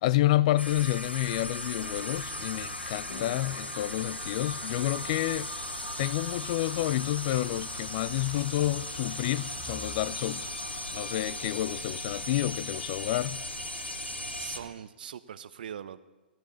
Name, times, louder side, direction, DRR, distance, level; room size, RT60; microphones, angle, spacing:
voice 1, 0.0-5.5 6.0-13.4, left 15 dB, 40° left, 0.3 m, -29 dB
sound 1, 0.6-14.6, left 1 dB, 85° left, 0.9 m, -37 dB
sound 2, 1.8-14.7, right 3 dB, 15° right, 2.1 m, -48 dB
sound 3, 3.1-11.5, left 3 dB, 65° left, 1.7 m, -54 dB
voice 2, 14.4-16.0, right 9 dB, 55° right, 0.7 m, -41 dB
18.0 x 12.0 x 3.2 m
figure-of-eight pair, 105°, 6 cm